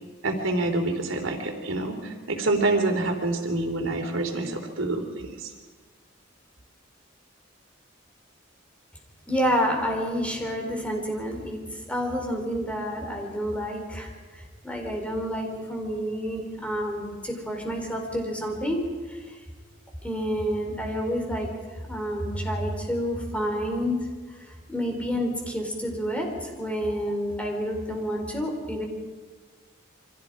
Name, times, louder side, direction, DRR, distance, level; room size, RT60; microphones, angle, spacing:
voice 1, 0.2-5.5, right 2 dB, 90° right, 4 dB, 3.4 m, -27 dB
voice 2, 9.3-11.6 11.9-14.1 14.4-18.8 19.1-19.4 20.0-21.5 21.9-24.1 24.7-28.9, equal, 5° left, 1 dB, 4.3 m, -29 dB
29.0 x 24.5 x 5.0 m, 1.4 s
head